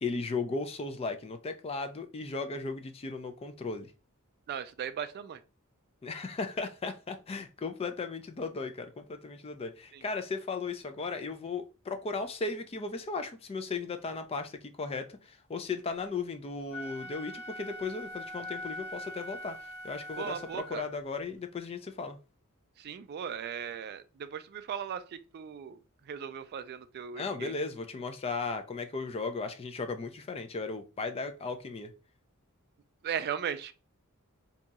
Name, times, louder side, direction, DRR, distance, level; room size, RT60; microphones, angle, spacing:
voice 1, 0.0-3.9 6.0-19.6 19.8-22.2 27.1-31.9, left 4 dB, 25° left, 0.4 m, -36 dB
voice 2, 4.5-5.4 9.9-10.0 20.2-20.9 22.8-25.8 26.1-27.5 33.0-33.7, right 8 dB, 50° right, 0.3 m, -37 dB
Wind instrument woodwind instrument, 16.7-21.0, left 1 dB, 90° left, 0.6 m, -42 dB
2.7 x 2.3 x 4.0 m
head